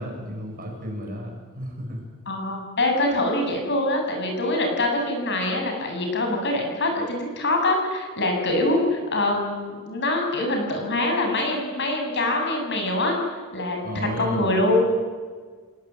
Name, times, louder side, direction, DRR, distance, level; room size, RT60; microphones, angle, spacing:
voice 1, 0.0-2.0 13.8-14.6, equal, 40° right, 1 dB, 7.5 m, -32 dB
voice 2, 2.3-13.2 13.5-14.8, left 2 dB, 55° left, 3 dB, 7.2 m, -24 dB
30.0 x 19.0 x 9.5 m, 1.5 s
head